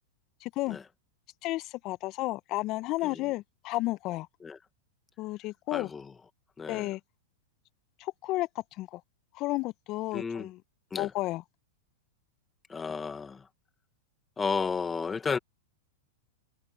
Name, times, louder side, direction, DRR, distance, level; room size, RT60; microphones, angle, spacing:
voice 1, 0.4-0.8 1.4-4.3 5.2-5.9 6.7-7.0 8.0-9.0 9.3-10.6 11.0-11.4, left 19 dB, 45° left, 1.5 m, -32 dB
voice 2, 5.7-6.1 6.6-6.9 10.1-10.5 10.9-11.1 12.7-13.5 14.4-15.4, left 5 dB, 15° left, 2.2 m, -33 dB
hypercardioid pair, 105°, 0 cm